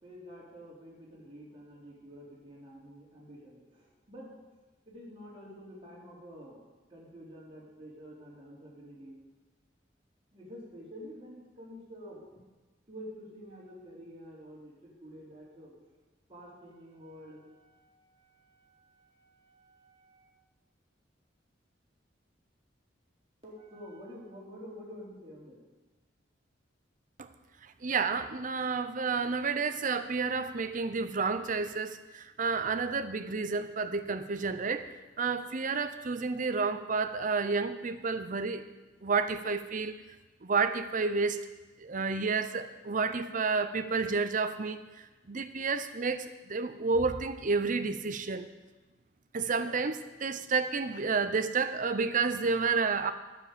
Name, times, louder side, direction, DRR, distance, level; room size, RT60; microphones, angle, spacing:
voice 1, 0.0-4.3 4.8-6.6 6.9-9.2 10.3-12.4 12.9-15.8 16.3-20.3 23.4-25.6, equal, 30° right, -5 dB, 3.5 m, -49 dB
voice 2, 27.6-34.9 35.2-38.6 39.0-40.0 40.4-41.4 41.8-48.5 49.3-53.1, right 4 dB, 45° right, 10 dB, 0.7 m, -30 dB
9.6 x 7.0 x 8.3 m, 1.2 s
head